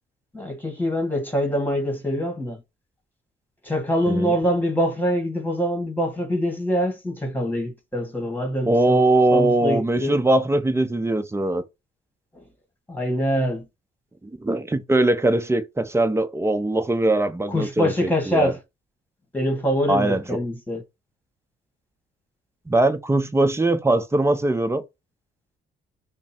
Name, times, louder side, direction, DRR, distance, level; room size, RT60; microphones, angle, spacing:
voice 1, 0.3-2.6 3.6-9.0 9.3-10.2 12.9-13.7 17.5-18.6 19.3-20.8, equal, 10° left, 1.9 m, -24 dB
voice 2, 8.7-11.6 14.2-18.5 19.9-20.2 22.7-24.8, right 2 dB, 15° right, 0.7 m, -21 dB
5.1 x 2.1 x 4.4 m
cardioid pair, 90°, 20 cm